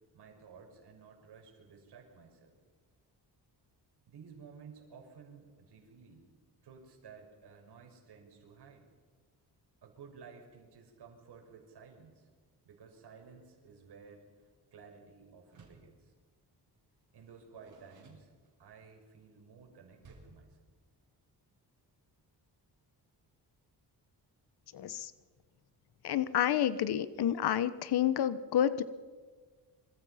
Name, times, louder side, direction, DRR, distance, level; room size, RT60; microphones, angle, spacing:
voice 1, 0.1-2.6 4.1-6.3 6.6-8.9 9.8-12.3 12.6-14.2 14.7-16.1 17.1-18.3 18.6-20.6, right 5 dB, 75° right, 3 dB, 6.0 m, -54 dB
Door, 15.4-16.0 17.1-18.8 20.0-20.5, right 3 dB, 45° right, 7.1 m, -59 dB
voice 2, 24.7-25.1 26.0-28.8, left 10 dB, 70° left, 14 dB, 1.2 m, -29 dB
26.5 x 26.0 x 5.8 m, 1.5 s
wide cardioid pair, 180°, 40 cm